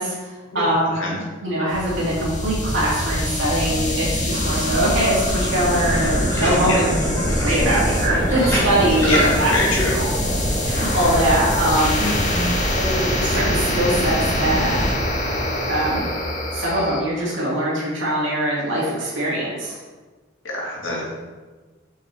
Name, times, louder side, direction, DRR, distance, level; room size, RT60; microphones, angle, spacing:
voice 1, 0.0-7.0 7.4-10.1 10.6-12.1 12.7-14.8 15.4-16.1 16.5-19.8, right 1 dB, 70° right, -7 dB, 2.3 m, -22 dB
sound 1, 1.7-17.0, equal, 40° left, 1.5 m, -23 dB
sound 2, 5.2-11.7, equal, 15° left, 1.7 m, -27 dB
voice 2, 9.1-10.0 12.0-12.5 20.4-21.1, left 1 dB, 80° left, -4 dB, 2.1 m, -25 dB
7.6 x 5.8 x 3.4 m, 1.3 s
head